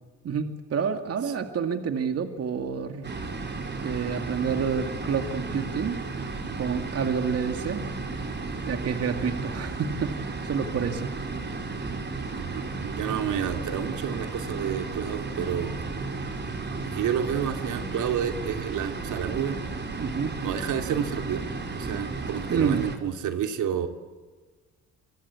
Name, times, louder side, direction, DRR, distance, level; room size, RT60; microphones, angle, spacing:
voice 1, 0.2-3.1 3.8-6.0 6.6-7.8 8.7-11.1 20.0-20.4 22.5-22.8, right 6 dB, 55° right, 6 dB, 2.3 m, -28 dB
sound 1, 3.0-23.0, right 3 dB, 35° right, 4.6 m, -34 dB
voice 2, 12.3-15.8 16.8-19.6 20.4-21.5 21.7-23.9, right 8 dB, 80° right, 6 dB, 2.9 m, -30 dB
27.5 x 23.0 x 8.4 m, 1.4 s
cardioid pair, 90°, 30 cm